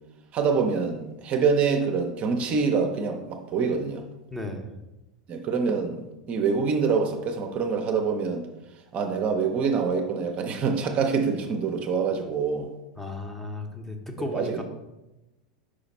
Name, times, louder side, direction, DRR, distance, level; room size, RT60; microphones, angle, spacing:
voice 1, 0.3-4.0 5.3-8.5 8.9-12.7 14.3-14.6, right 5 dB, 35° right, 4 dB, 0.7 m, -25 dB
voice 2, 4.3-4.7 13.0-14.6, left 1 dB, 5° left, 3 dB, 0.8 m, -34 dB
5.0 x 4.9 x 4.1 m, 0.99 s
figure-of-eight pair, 90°, 4 cm